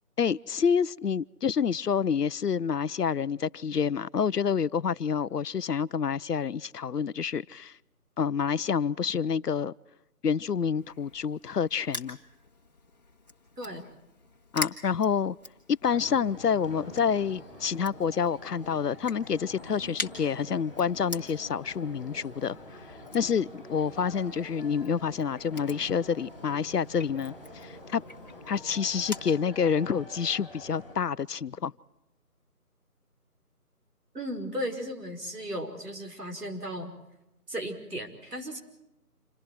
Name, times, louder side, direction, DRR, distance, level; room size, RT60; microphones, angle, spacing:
voice 1, 0.2-7.8 8.2-9.7 10.2-12.2 14.5-15.4 15.7-22.6 23.1-27.3 27.6-28.0 28.5-31.7, left 7 dB, 90° left, 0.8 m, -28 dB
Crushing, 10.8-29.3, left 3 dB, 30° left, 1.7 m, -45 dB
voice 2, 13.6-14.0 34.1-36.9 37.5-38.6, equal, 85° right, 5.3 m, -36 dB
sound 1, 15.8-31.0, left 1 dB, ahead, 6.4 m, -46 dB
28.5 x 27.5 x 4.7 m
figure-of-eight pair, 175°, 46 cm